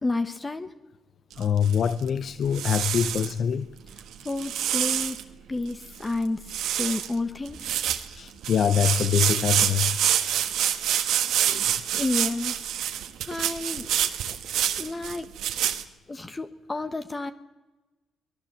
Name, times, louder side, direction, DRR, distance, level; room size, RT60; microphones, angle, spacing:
voice 1, 0.0-0.7 4.2-5.2 5.5-6.4 6.7-7.7 11.9-12.6 13.2-13.9 14.8-15.3 16.1-17.3, left 2 dB, 25° left, 1.3 m, -30 dB
sound 1, 1.3-2.1 2.5-3.3 4.0-5.2 5.7-5.8 6.0-6.2 6.5-7.1 7.5-15.8, right 11 dB, 80° right, 1.5 m, -27 dB
voice 2, 1.4-3.7 8.1-10.0 11.4-11.7 14.3-14.4, left 8 dB, 55° left, 0.7 m, -25 dB
23.5 x 19.5 x 7.5 m
cardioid pair, 90°, 0 cm